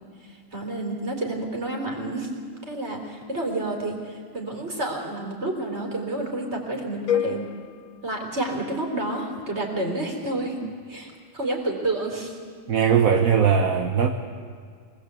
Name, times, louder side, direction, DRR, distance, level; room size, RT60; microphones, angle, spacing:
voice 1, 0.5-2.3 2.7-7.5 8.0-10.6 10.9-12.3, right 2 dB, 30° right, 1 dB, 4.1 m, -29 dB
sound 1, 7.1-9.1, left 9 dB, 55° left, 1.1 m, -30 dB
voice 2, 12.7-14.1, right 7 dB, 50° right, 4 dB, 1.3 m, -19 dB
24.5 x 19.5 x 8.3 m, 2.1 s
omnidirectional pair, 2.1 m